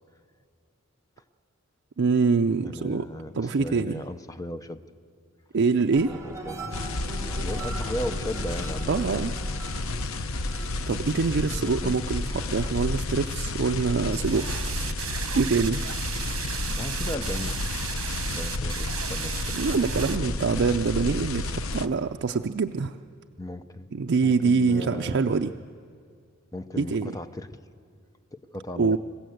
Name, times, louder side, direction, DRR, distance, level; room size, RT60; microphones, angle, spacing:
voice 1, 2.0-3.0 3.3-4.0 5.5-6.1 8.9-9.3 10.9-14.5 15.4-15.8 19.5-22.9 23.9-25.5 26.8-27.1 28.8-29.0, right 4 dB, 60° right, 5 dB, 0.5 m, -24 dB
voice 2, 2.6-4.8 6.1-6.8 7.4-8.9 11.6-12.0 16.8-17.6 18.3-20.4 23.4-23.9 24.2-25.4 26.5-27.6 28.3-29.0, left 1 dB, 15° left, 10 dB, 0.7 m, -36 dB
sound 1, 5.9-14.7 15.1-15.7, right 2 dB, 15° right, 3.2 m, -42 dB
sound 2, 6.7-21.9, left 2 dB, 85° left, 0.8 m, -31 dB
sound 3, 14.1-20.2, right 10 dB, 80° right, 1.0 m, -35 dB
27.0 x 16.0 x 7.9 m, 2.3 s
head